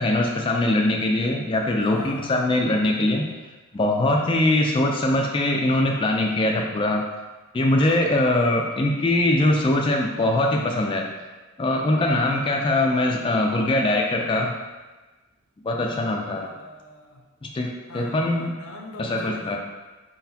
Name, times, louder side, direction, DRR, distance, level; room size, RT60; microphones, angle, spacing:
voice 1, 0.0-3.3 3.7-7.0 7.5-11.1 11.6-14.5 15.6-16.5 17.4-18.6 19.0-19.6, left 1 dB, 25° left, 0 dB, 0.3 m, -22 dB
voice 2, 1.8-2.4 16.3-17.2 17.9-19.6, left 2 dB, 75° left, 1 dB, 0.6 m, -41 dB
4.6 x 4.0 x 2.8 m, 1.2 s
head